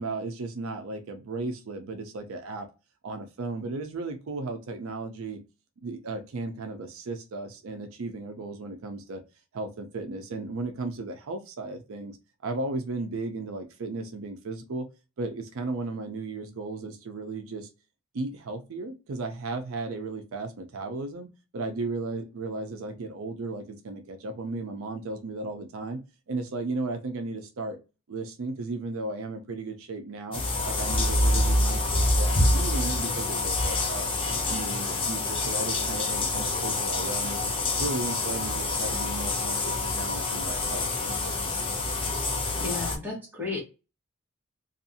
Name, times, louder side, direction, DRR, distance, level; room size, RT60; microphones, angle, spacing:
voice 1, 0.0-2.7 3.0-5.4 5.8-9.2 9.5-12.1 12.4-14.9 15.2-17.7 18.1-26.0 26.3-27.8 28.1-34.1 34.5-37.5 37.8-41.8, right 3 dB, 70° right, 6 dB, 0.5 m, -35 dB
sound 1, 30.3-43.0, left 2 dB, 25° left, 0.6 m, -27 dB
voice 2, 42.6-43.6, left 3 dB, 10° right, -4 dB, 1.2 m, -33 dB
2.6 x 2.4 x 2.6 m, 0.28 s
head